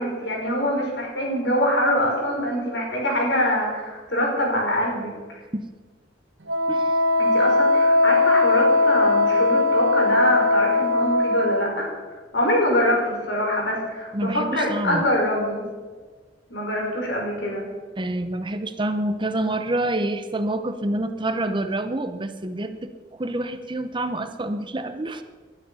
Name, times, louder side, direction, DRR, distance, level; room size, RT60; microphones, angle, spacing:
voice 1, 0.0-5.4 7.2-15.6 16.5-17.6, left 1 dB, 70° left, -1 dB, 5.6 m, -24 dB
Wind instrument woodwind instrument, 6.5-11.7, left 2 dB, 85° right, 1.6 m, -19 dB
voice 2, 14.1-15.1 18.0-25.2, right 1 dB, 25° right, 9 dB, 0.8 m, -27 dB
20.0 x 11.5 x 5.6 m, 1.5 s
head